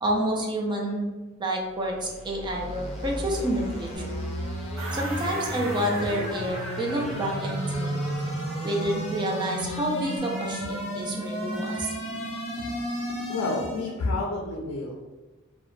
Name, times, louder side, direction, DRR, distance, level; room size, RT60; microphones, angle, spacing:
voice 1, 0.0-1.1 1.4-4.1 4.9-8.0 8.6-11.9, right 1 dB, 20° right, -1 dB, 0.4 m, -29 dB
sound 1, 1.8-14.0, equal, 30° left, 0.5 m, -33 dB
Bass guitar, 3.9-8.6 8.9-10.2, right 2 dB, 55° right, 1.0 m, -46 dB
sound 2, 4.8-9.2, right 1 dB, 85° right, 0.6 m, -39 dB
voice 2, 13.3-14.9, left 2 dB, 90° left, -1 dB, 0.4 m, -29 dB
2.4 x 2.0 x 3.1 m, 1.2 s
head